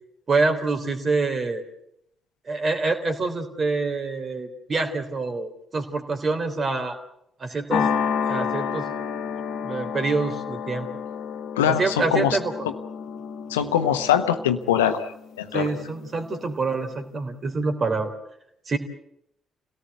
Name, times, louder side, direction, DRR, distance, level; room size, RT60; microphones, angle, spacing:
voice 1, 0.3-1.6 2.5-7.0 7.4-7.9 8.3-8.9 9.6-10.9 11.7-12.5 15.5-18.1 18.7-18.8, right 3 dB, 40° right, 6 dB, 3.4 m, -26 dB
sound 1, 7.7-16.2, left 7 dB, 55° left, 1.7 m, -30 dB
voice 2, 11.6-12.4 13.5-15.0 15.4-15.7, left 9 dB, 75° left, 9 dB, 1.0 m, -22 dB
28.0 x 17.5 x 8.0 m, 0.77 s
figure-of-eight pair, 40°, 0 cm